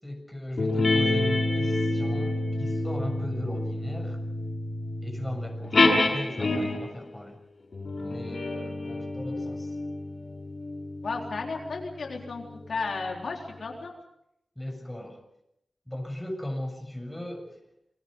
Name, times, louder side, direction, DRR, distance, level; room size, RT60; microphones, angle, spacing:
voice 1, 0.0-4.2 5.0-7.4 8.0-9.7 14.6-15.2 15.9-17.6, left 1 dB, 5° left, 3 dB, 7.3 m, -37 dB
sound 1, 0.6-7.0 7.7-12.6, left 2 dB, 60° left, 7.1 m, -28 dB
voice 2, 11.0-13.9, left 4 dB, 80° left, 1 dB, 3.9 m, -34 dB
28.0 x 22.5 x 5.5 m, 0.79 s
wide cardioid pair, 80°, 0 cm